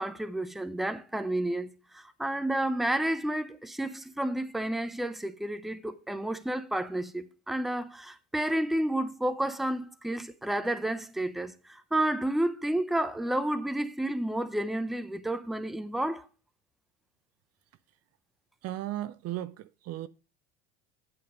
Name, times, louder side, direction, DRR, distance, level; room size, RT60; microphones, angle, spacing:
voice 1, 0.0-16.3, right 1 dB, ahead, 0.7 m, -31 dB
voice 2, 18.6-20.1, right 14 dB, 45° right, 0.5 m, -36 dB
8.7 x 7.1 x 5.1 m
supercardioid pair, 100°, 34 cm